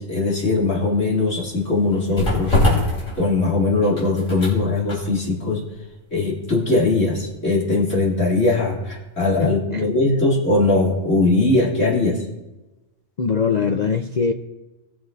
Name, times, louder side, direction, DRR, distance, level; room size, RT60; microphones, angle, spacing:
voice 1, 0.0-2.6 3.2-5.6 6.1-12.2, left 2 dB, 70° left, -4 dB, 3.3 m, -20 dB
sound 1, 0.9-8.9 9.2-9.4, left 2 dB, 90° left, 4.5 m, -26 dB
voice 2, 9.4-9.8 13.2-14.3, left 5 dB, 50° left, 5 dB, 0.5 m, -22 dB
20.0 x 7.6 x 2.7 m, 1.1 s
omnidirectional pair, 1.3 m